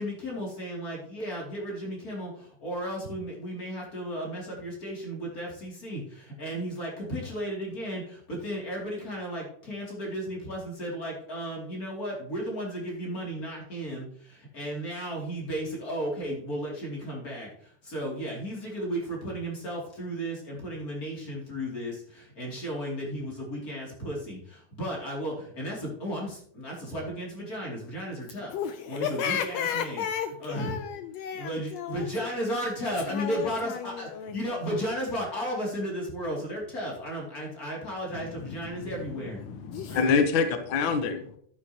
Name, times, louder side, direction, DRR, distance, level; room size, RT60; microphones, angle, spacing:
voice 1, 0.0-28.5 28.9-30.0 30.4-30.8 31.3-39.4 39.9-40.2, equal, 30° left, 2.8 m, -34 dB
voice 2, 28.5-32.3 33.0-34.8 39.4-40.0, left 8 dB, 85° left, 1.5 m, -34 dB
voice 3, 38.4-41.4, left 5 dB, 65° left, 1.2 m, -27 dB
11.5 x 9.3 x 2.9 m
omnidirectional pair, 3.6 m